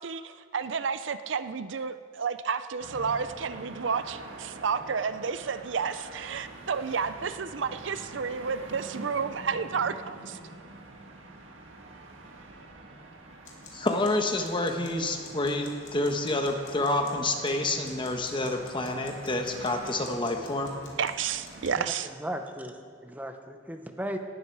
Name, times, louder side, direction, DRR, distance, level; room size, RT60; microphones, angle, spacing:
voice 1, 0.0-10.4 21.0-22.1, right 6 dB, 70° right, 12 dB, 0.5 m, -31 dB
sound 1, 2.8-21.8, right 2 dB, 85° right, 1.6 m, -46 dB
sound 2, 13.4-21.8, left 6 dB, 75° left, 2.7 m, -51 dB
voice 2, 13.7-20.8, left 2 dB, 25° left, 4 dB, 1.2 m, -28 dB
voice 3, 21.7-24.2, equal, 10° right, 5 dB, 1.0 m, -37 dB
18.0 x 11.5 x 4.7 m, 2.1 s
head